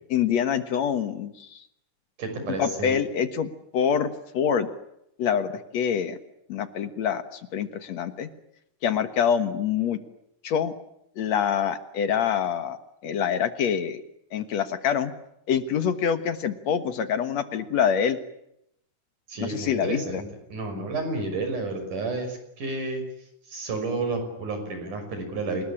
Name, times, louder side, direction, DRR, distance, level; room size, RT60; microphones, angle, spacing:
voice 1, 0.1-1.6 2.6-4.7 5.2-6.2 6.5-8.3 8.8-10.0 10.4-10.7 11.2-12.8 13.0-14.0 14.3-15.1 15.5-18.2 19.4-20.2, left 8 dB, 65° left, 10 dB, 2.5 m, -26 dB
voice 2, 2.2-3.0 19.3-23.0 23.5-25.6, right 3 dB, 85° right, 6 dB, 7.5 m, -31 dB
28.0 x 20.0 x 9.9 m, 0.80 s
omnidirectional pair, 3.5 m